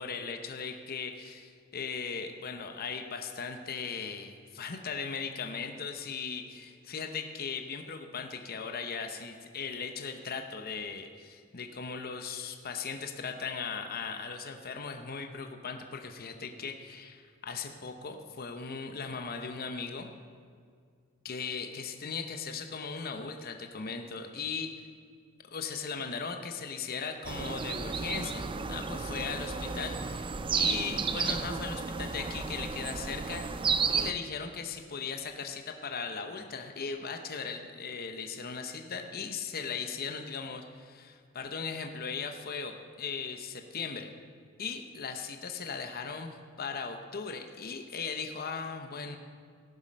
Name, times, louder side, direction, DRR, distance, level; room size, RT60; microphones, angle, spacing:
voice 1, 0.0-20.1 21.2-24.7 25.5-30.2 30.5-33.5 33.9-44.1 44.6-49.2, left 5 dB, 45° left, 5 dB, 0.8 m, -38 dB
sound 1, 27.2-34.1, right 5 dB, 25° right, 0.4 m, -32 dB
17.0 x 7.4 x 5.3 m, 2.1 s
head